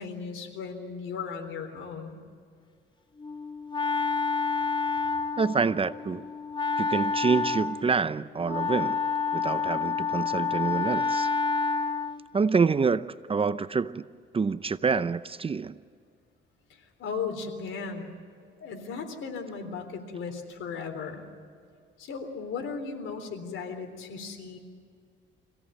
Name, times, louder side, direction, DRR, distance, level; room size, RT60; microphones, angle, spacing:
voice 1, 0.0-2.2 16.7-18.1 18.6-21.2 22.0-24.6, left 5 dB, 80° left, 3.8 m, -36 dB
Wind instrument woodwind instrument, 3.2-12.3, left 5 dB, 25° left, 1.0 m, -29 dB
voice 2, 5.4-6.3 6.8-9.0 9.3-11.3 12.3-14.0 14.3-15.8, right 5 dB, 30° right, 0.7 m, -27 dB
26.0 x 17.0 x 9.1 m
cardioid pair, 90°, 20 cm